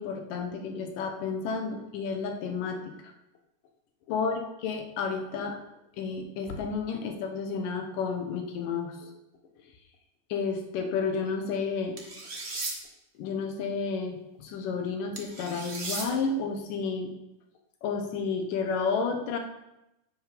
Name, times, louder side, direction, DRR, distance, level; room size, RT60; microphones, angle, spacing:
voice 1, 0.0-2.9 4.1-5.6 6.0-9.1 10.3-12.0 13.2-17.1 17.8-19.4, left 5 dB, 85° left, 4 dB, 2.9 m, -31 dB
sound 1, 12.0-12.7 15.2-16.1, right 3 dB, 35° right, 1.0 m, -36 dB
10.5 x 8.2 x 5.2 m, 0.90 s
omnidirectional pair, 3.7 m